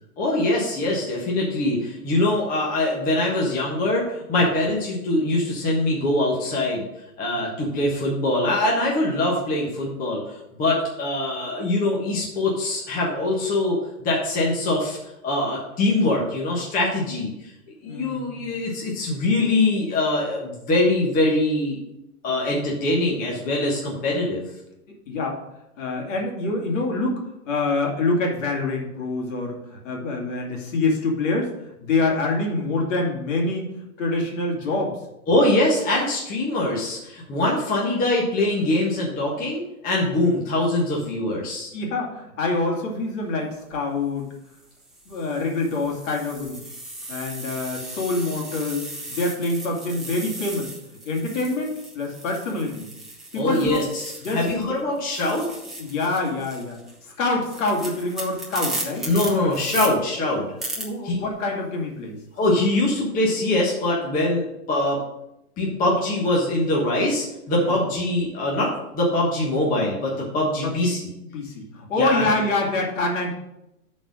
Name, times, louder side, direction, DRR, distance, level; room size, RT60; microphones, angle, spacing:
voice 1, 0.2-6.9 7.2-17.5 17.8-21.8 22.2-24.4 35.3-41.7 53.3-54.0 54.3-55.5 59.1-60.5 61.0-61.2 62.3-65.0 65.6-71.0 71.9-72.3, left 2 dB, 20° left, -3 dB, 1.3 m, -23 dB
voice 2, 17.9-18.5 25.1-25.4 25.8-35.0 41.7-44.3 45.1-46.6 47.1-50.7 51.1-52.9 53.3-53.8 54.2-54.8 55.8-59.0 60.8-62.2 67.6-68.0 70.6-70.9 71.3-73.3, left 2 dB, 55° left, 0 dB, 2.5 m, -26 dB
sound 1, 43.5-43.8 44.5-54.7 55.0-59.9 60.6-60.8, right 1 dB, ahead, 1.2 m, -36 dB
7.5 x 4.3 x 6.3 m, 0.86 s
hypercardioid pair, 140°, 46 cm